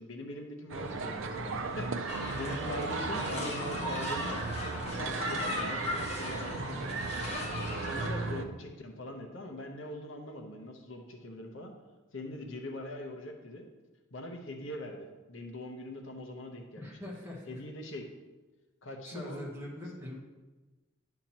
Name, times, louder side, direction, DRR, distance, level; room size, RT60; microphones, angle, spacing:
voice 1, 0.0-4.5 5.0-6.9 7.6-11.7 12.1-13.7 14.1-17.0 17.5-18.1 18.8-19.4, left 1 dB, 70° left, 3 dB, 0.9 m, -42 dB
sound 1, 0.7-8.4, right 3 dB, 75° right, 0.6 m, -36 dB
sound 2, 2.1-8.1, left 1 dB, 30° left, 1.3 m, -38 dB
voice 2, 16.8-17.6 19.0-20.2, left 1 dB, 10° right, -4 dB, 1.4 m, -42 dB
10.5 x 5.8 x 2.9 m, 1.2 s
head